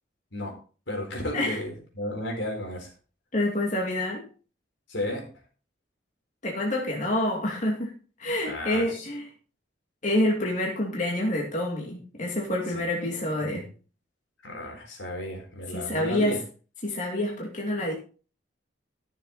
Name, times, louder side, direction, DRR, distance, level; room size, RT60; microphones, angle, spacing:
voice 1, 0.9-2.9 4.9-5.2 8.5-9.1 12.7-13.6 14.4-16.4, left 1 dB, 80° left, 1 dB, 4.4 m, -34 dB
voice 2, 3.3-4.3 6.4-7.9 8.2-9.3 10.0-13.7 15.7-16.4 16.8-17.9, left 1 dB, 40° left, -1 dB, 2.5 m, -27 dB
14.5 x 7.0 x 4.2 m, 0.38 s
head